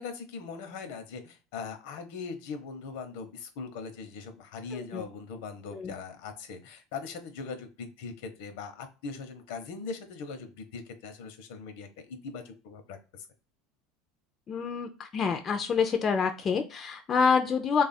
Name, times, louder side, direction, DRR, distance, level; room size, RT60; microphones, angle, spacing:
voice 1, 0.0-13.0, left 5 dB, 70° left, 8 dB, 0.8 m, -40 dB
voice 2, 4.7-5.0 5.7-5.9 14.5-17.8, left 5 dB, 30° left, 5 dB, 0.4 m, -27 dB
3.3 x 2.4 x 4.0 m, 0.33 s
supercardioid pair, 130°, 0 cm